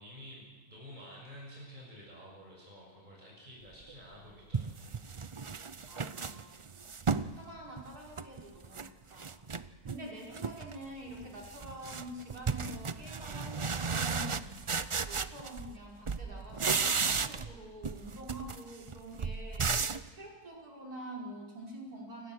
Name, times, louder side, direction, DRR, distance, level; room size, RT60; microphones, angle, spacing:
voice 1, 0.0-5.0, equal, 30° right, -3 dB, 6.5 m, -50 dB
sound 1, 3.9-4.0 4.5-7.3 7.8-8.9 9.2-10.0 10.3-10.8 11.1-15.8 16.1-17.6 17.8-20.1, right 5 dB, 55° right, 0.3 m, -34 dB
voice 2, 5.9-6.5 7.3-22.3, right 1 dB, 80° right, -2 dB, 5.9 m, -47 dB
29.0 x 17.5 x 6.4 m, 1.4 s
omnidirectional pair, 1.6 m